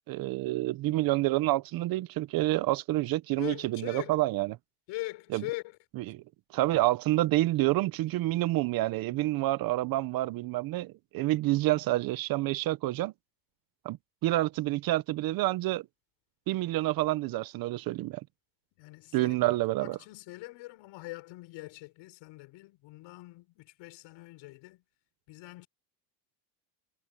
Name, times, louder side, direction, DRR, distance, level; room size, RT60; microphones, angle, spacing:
voice 1, 0.1-4.5 5.3-5.4 6.1-6.2 6.5-13.1 13.8-14.0 14.2-15.8 16.5-18.2 19.1-20.0, right 17 dB, 45° right, 0.8 m, -28 dB
voice 2, 3.4-4.2 4.9-5.8 18.8-24.8 25.3-25.7, left 20 dB, 60° left, 6.1 m, -42 dB
cardioid pair, 140°, 50 cm